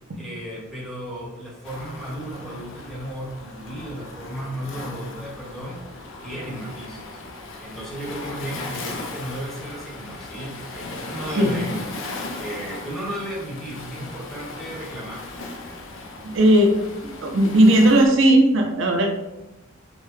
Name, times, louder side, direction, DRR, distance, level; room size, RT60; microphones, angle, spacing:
voice 1, 0.2-5.8 6.2-7.2 7.6-15.2, equal, ahead, -6 dB, 1.1 m, -34 dB
Waves surf, 1.6-18.1, left 2 dB, 65° left, 0.6 m, -37 dB
voice 2, 16.2-16.8 17.0-19.1, right 1 dB, 65° right, 2 dB, 0.5 m, -17 dB
5.1 x 2.1 x 3.2 m, 0.97 s
head